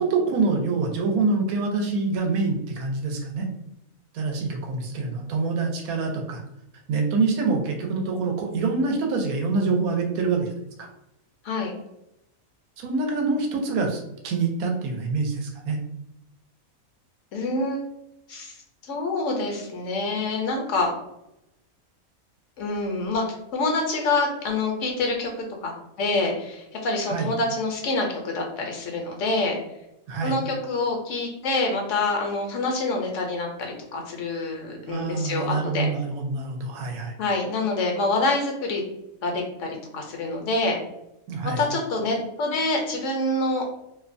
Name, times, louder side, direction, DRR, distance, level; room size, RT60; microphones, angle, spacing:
voice 1, 0.0-3.5 4.1-6.4 6.9-10.5 10.8-10.9 12.8-15.8 27.1-27.3 30.1-30.4 34.9-37.1 41.3-41.6, right 4 dB, 85° right, 2 dB, 1.1 m, -25 dB
voice 2, 17.3-17.8 18.3-18.5 18.8-20.9 22.6-23.2 23.5-25.3 25.6-25.7 26.0-29.6 30.2-35.9 37.2-38.8 39.2-39.7 39.9-40.8 41.4-43.7, left 2 dB, 70° left, 1 dB, 0.8 m, -26 dB
2.6 x 2.1 x 2.5 m, 0.86 s
omnidirectional pair, 1.5 m